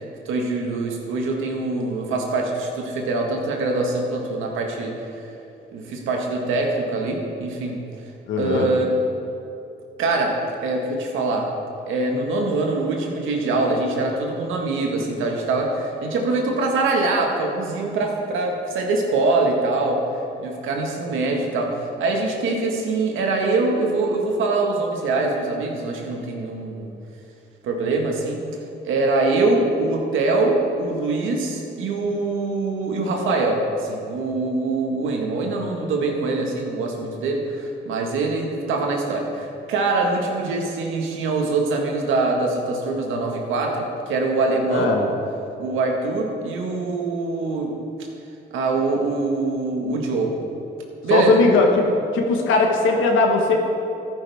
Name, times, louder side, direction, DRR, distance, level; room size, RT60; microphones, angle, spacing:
voice 1, 0.3-5.2 5.7-7.8 8.4-8.9 10.0-10.3 10.6-11.5 11.9-20.0 20.4-26.9 27.6-28.4 28.8-44.9 45.6-47.7 48.5-50.4 51.0-51.4, right 3 dB, 85° right, 1 dB, 1.7 m, -23 dB
voice 2, 8.3-8.7 44.7-45.0 51.1-51.9 52.1-53.6, left 3 dB, 85° left, 1 dB, 1.5 m, -18 dB
13.5 x 11.0 x 3.6 m, 2.7 s
cardioid pair, 90°, 20 cm